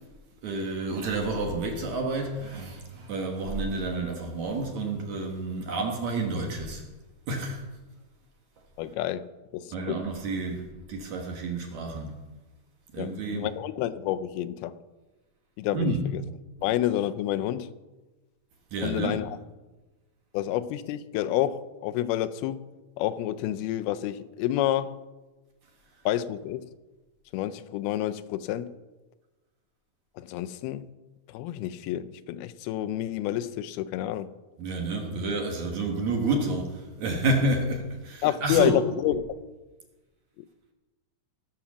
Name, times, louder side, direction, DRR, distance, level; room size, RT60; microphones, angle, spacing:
voice 1, 0.4-6.8 7.3-7.6 9.7-12.2 12.9-13.5 15.7-16.1 18.7-19.2 34.6-38.8, right 2 dB, 60° right, 2.2 m, -29 dB
voice 2, 8.8-9.3 9.5-10.0 13.0-14.7 15.6-16.2 16.6-17.7 18.8-19.4 20.3-22.7 23.0-25.0 26.1-26.7 27.3-28.7 30.2-30.9 31.3-34.3 38.2-39.2, left 12 dB, 85° left, 2.5 m, -29 dB
17.0 x 6.0 x 7.0 m
omnidirectional pair, 4.5 m